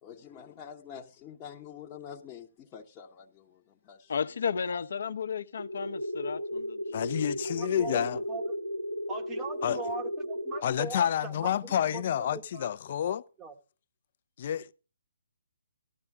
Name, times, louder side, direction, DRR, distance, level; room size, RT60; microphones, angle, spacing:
voice 1, 0.0-4.1, left 8 dB, 20° left, 1.0 m, -47 dB
voice 2, 4.1-7.0, left 6 dB, 60° left, 0.9 m, -33 dB
sound 1, 5.6-10.6, equal, 85° right, 3.3 m, -35 dB
voice 3, 6.9-8.2 9.6-9.8 10.6-13.2 14.4-14.7, left 10 dB, 40° left, 0.6 m, -29 dB
voice 4, 7.6-8.4 9.1-12.7 13.0-13.5, right 4 dB, 10° right, 1.1 m, -41 dB
14.5 x 12.0 x 3.6 m
hypercardioid pair, 160°, 0 cm